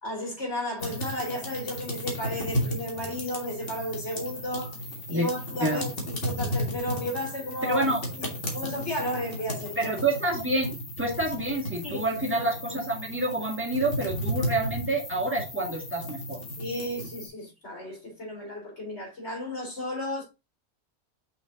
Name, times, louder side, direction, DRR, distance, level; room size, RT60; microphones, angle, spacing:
voice 1, 0.0-4.8 5.1-7.8 8.1-8.3 8.5-9.9 11.7-12.5 16.6-20.2, left 1 dB, 85° left, 3.4 m, -34 dB
sound 1, 0.8-17.3, equal, 55° left, 2.1 m, -34 dB
voice 2, 7.7-8.0 9.8-16.4, right 2 dB, 10° right, 1.9 m, -28 dB
5.8 x 5.3 x 3.8 m
omnidirectional pair, 1.1 m